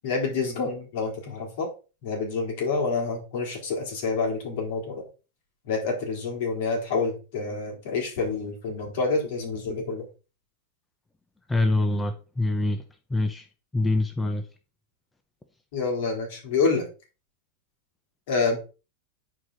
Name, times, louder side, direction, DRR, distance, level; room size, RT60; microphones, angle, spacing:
voice 1, 0.0-1.7 2.0-5.0 5.6-10.1 15.7-16.9 18.3-18.6, left 4 dB, 60° left, 3.9 m, -27 dB
voice 2, 11.5-12.8 13.1-13.5 13.7-14.4, left 2 dB, 10° left, 0.6 m, -25 dB
9.9 x 4.8 x 3.9 m
supercardioid pair, 155°, 0 cm